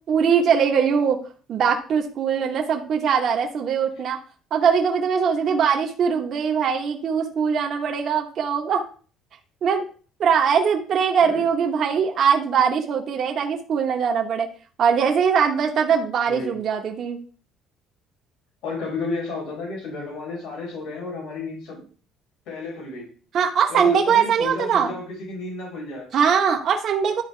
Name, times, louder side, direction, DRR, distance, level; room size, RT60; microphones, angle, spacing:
voice 1, 0.1-1.2 1.5-4.2 4.5-8.8 9.6-9.8 10.2-14.5 14.8-17.2 23.3-24.9 26.1-27.2, right 7 dB, 50° right, 1 dB, 1.0 m, -21 dB
voice 2, 18.6-21.8 22.5-23.1 23.7-26.1, left 3 dB, 80° left, -4 dB, 4.4 m, -32 dB
11.5 x 4.2 x 3.3 m, 0.39 s
cardioid pair, 125°, 0 cm